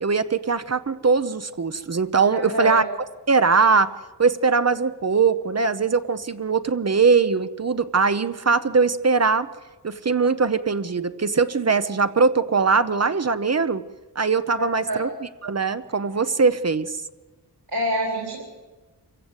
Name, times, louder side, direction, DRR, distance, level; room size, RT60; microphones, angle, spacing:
voice 1, 0.0-2.8 3.3-3.9 4.2-9.5 9.8-13.8 14.2-15.1 15.4-16.9, right 4 dB, 40° right, 12 dB, 0.8 m, -21 dB
voice 2, 2.3-2.9 14.6-15.0 17.7-18.4, right 1 dB, 65° right, 0 dB, 3.6 m, -26 dB
26.0 x 15.5 x 8.1 m, 1.2 s
wide cardioid pair, 110°, 41 cm